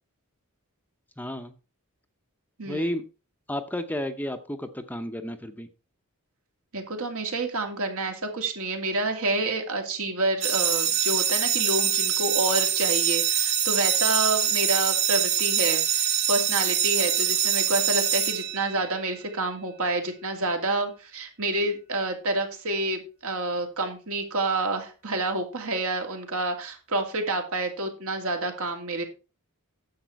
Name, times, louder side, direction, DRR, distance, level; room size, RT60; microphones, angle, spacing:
voice 1, 1.2-1.5 2.7-3.0 3.5-5.7, left 1 dB, 10° left, 8 dB, 0.7 m, -32 dB
voice 2, 6.7-29.0, right 2 dB, 70° right, 4 dB, 2.5 m, -28 dB
sound 1, 10.4-19.1, right 9 dB, 50° right, 1.7 m, -24 dB
10.5 x 7.3 x 4.6 m, 0.32 s
head